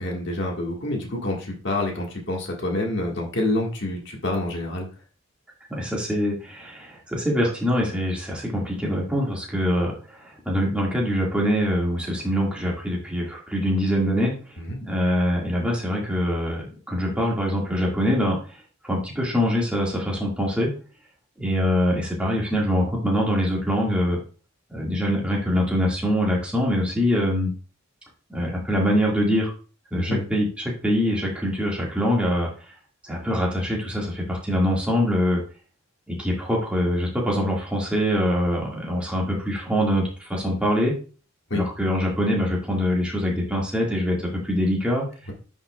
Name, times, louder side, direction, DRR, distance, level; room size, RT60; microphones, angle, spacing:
voice 1, 0.0-4.9 14.6-14.8 29.9-30.2 41.5-41.6, left 1 dB, 55° left, 0 dB, 1.6 m, -27 dB
voice 2, 5.7-18.4 18.8-20.7 21.4-24.2 24.7-27.5 28.3-29.5 29.9-32.5 33.0-35.4 36.1-41.0 41.5-45.0, equal, 5° right, -3 dB, 1.8 m, -24 dB
9.8 x 5.4 x 2.3 m, 0.37 s
head